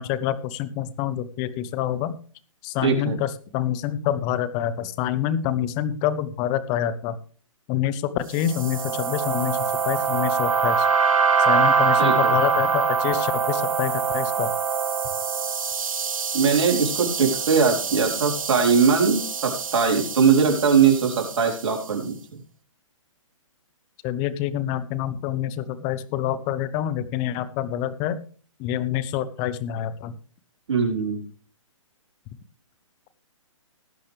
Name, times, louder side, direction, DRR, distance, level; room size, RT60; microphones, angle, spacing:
voice 1, 0.0-2.1 2.6-7.2 7.7-10.9 11.4-14.5 24.0-28.2 28.6-30.2, left 11 dB, 25° left, 15 dB, 0.8 m, -27 dB
voice 2, 2.8-3.2 12.0-12.3 16.3-22.1 30.7-31.2, right 6 dB, 60° right, 1 dB, 4.0 m, -21 dB
sound 1, 8.4-21.7, right 5 dB, 85° right, 1.1 m, -24 dB
18.5 x 8.5 x 3.4 m, 0.40 s
hypercardioid pair, 150°, 17 cm